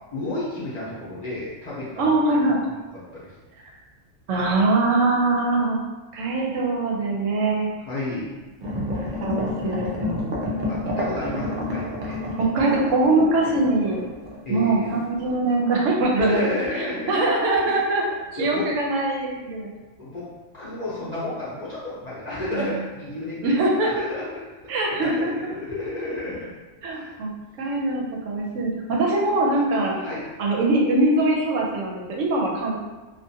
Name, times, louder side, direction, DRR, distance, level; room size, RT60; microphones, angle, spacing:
voice 1, 0.1-2.3 3.1-3.3 7.8-8.4 10.7-12.2 14.4-14.9 16.1-17.3 18.4-18.7 20.0-20.3 20.5-26.5 26.8-27.2 30.0-30.2, left 2 dB, 40° left, -9 dB, 0.7 m, -31 dB
voice 2, 2.0-2.6 4.3-5.8 6.1-7.7 9.0-10.4 12.4-14.1 14.5-16.4 16.8-18.0 18.3-19.7 22.5-22.7 23.4-23.9 24.7-25.5 26.8-27.3 27.6-30.0 30.4-33.0, right 2 dB, 80° right, -1 dB, 0.9 m, -22 dB
sound 1, 8.6-14.9 15.3-15.4, left 1 dB, 55° right, 0.5 m, -29 dB
2.5 x 2.4 x 2.6 m, 1.2 s
omnidirectional pair, 1.3 m